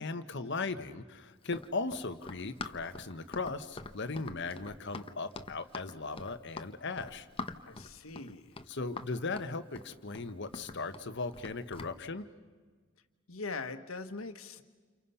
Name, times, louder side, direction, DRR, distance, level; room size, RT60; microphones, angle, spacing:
voice 1, 0.0-7.3 8.7-12.3, left 3 dB, 60° left, 10 dB, 1.3 m, -38 dB
Run, 1.4-12.0, left 3 dB, 25° left, 1.0 m, -45 dB
voice 2, 7.6-8.6 13.3-14.6, left 3 dB, 90° left, 9 dB, 1.4 m, -41 dB
29.5 x 29.0 x 5.7 m, 1.5 s
head